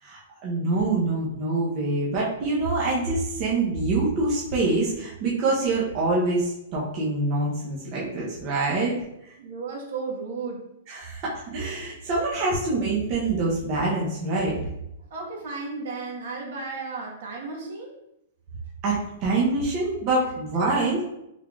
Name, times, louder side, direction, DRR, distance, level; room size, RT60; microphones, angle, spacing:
voice 1, 0.0-9.0 9.2-9.3 10.9-14.6 18.8-21.0, right 2 dB, 35° right, -5 dB, 0.7 m, -25 dB
voice 2, 9.4-10.6 15.1-18.0, right 4 dB, 65° right, -2 dB, 1.2 m, -34 dB
3.6 x 3.4 x 2.3 m, 0.84 s
hypercardioid pair, 155°, 0 cm